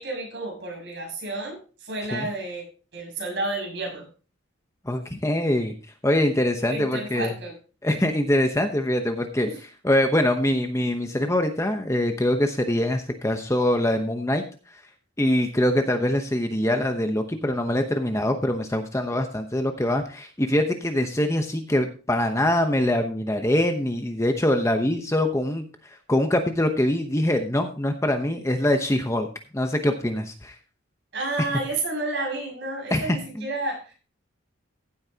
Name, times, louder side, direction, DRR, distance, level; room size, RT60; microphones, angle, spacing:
voice 1, 0.0-2.6 2.9-4.0 6.6-7.5 9.5-9.6 31.1-33.9, right 2 dB, 55° right, 0 dB, 6.3 m, -31 dB
voice 2, 4.8-5.7 6.0-7.3 7.8-9.5 9.8-14.4 15.2-29.3 29.5-30.5 31.4-31.5 32.9-33.5, left 1 dB, 15° left, 5 dB, 0.9 m, -24 dB
15.5 x 8.6 x 2.8 m, 0.36 s
head